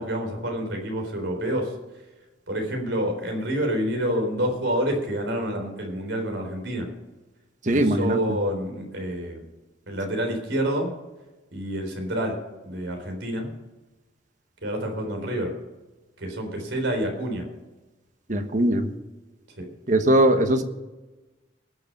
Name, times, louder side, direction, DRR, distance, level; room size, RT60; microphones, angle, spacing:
voice 1, 0.0-1.7 2.5-6.9 7.7-9.5 9.9-10.9 11.5-12.4 12.6-13.5 14.6-15.5 16.2-17.5 19.6-19.7, right 1 dB, 80° right, 3 dB, 4.0 m, -28 dB
voice 2, 7.7-8.2 18.3-18.9 19.9-20.6, right 1 dB, 45° right, 7 dB, 1.2 m, -20 dB
19.5 x 6.9 x 5.4 m, 1.1 s
head